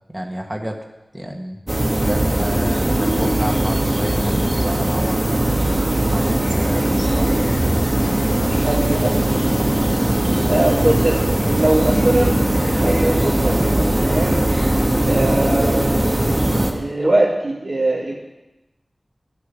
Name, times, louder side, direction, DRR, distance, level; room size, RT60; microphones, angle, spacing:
voice 1, 0.1-0.8 1.1-1.6 2.1-5.2 6.1-7.3 10.1-10.4, equal, 15° right, 1 dB, 1.7 m, -29 dB
sound 1, 1.7-16.7, right 1 dB, 35° right, 1.8 m, -19 dB
voice 2, 6.7-7.0 8.5-9.5 10.4-11.2 11.4-12.3 12.7-14.4 15.0-15.9 16.7-18.1, right 1 dB, 80° right, -10 dB, 3.4 m, -21 dB
12.5 x 6.8 x 9.9 m, 0.98 s
wide cardioid pair, 55°, 0 cm